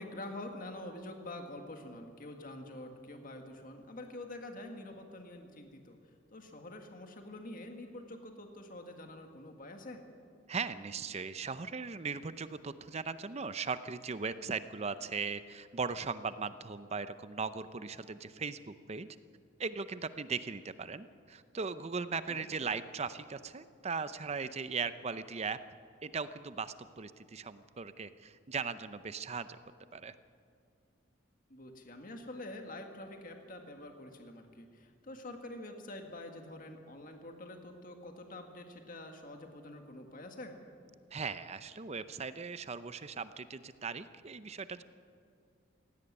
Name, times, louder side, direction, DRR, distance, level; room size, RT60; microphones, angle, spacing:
voice 1, 0.0-6.0 6.3-10.0 22.3-22.5 31.5-40.6, left 1 dB, 45° left, 4 dB, 1.8 m, -46 dB
voice 2, 10.5-19.1 19.6-25.6 26.0-29.5 29.9-30.1 41.1-44.8, right 5 dB, 35° right, 13 dB, 0.6 m, -38 dB
17.0 x 16.0 x 9.6 m, 2.3 s
head